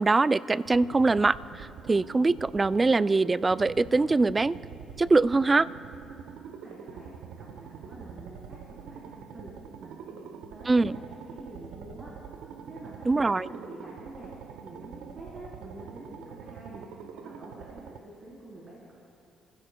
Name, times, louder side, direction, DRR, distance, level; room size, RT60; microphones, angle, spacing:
voice 1, 0.0-4.6 5.0-5.7 10.7-11.0 13.1-13.5, right 3 dB, 25° right, 17 dB, 0.3 m, -23 dB
sound 1, 0.6-18.0, right 7 dB, 90° right, 0.6 m, -45 dB
voice 2, 6.4-7.1 7.4-9.5 9.8-12.1 12.7-14.3 14.6-19.0, right 1 dB, 50° right, -6 dB, 3.7 m, -47 dB
29.5 x 15.5 x 2.2 m, 2.7 s
cardioid pair, 90°, 0 cm